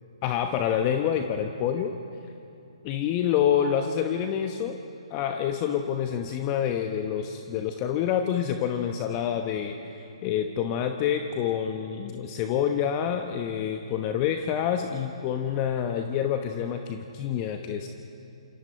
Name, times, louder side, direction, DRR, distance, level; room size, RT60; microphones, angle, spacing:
voice 1, 0.2-1.9 2.8-4.8 5.1-17.9, left 9 dB, 30° left, 5 dB, 1.0 m, -27 dB
27.0 x 27.0 x 4.5 m, 2.8 s
figure-of-eight pair, 135°, 3 cm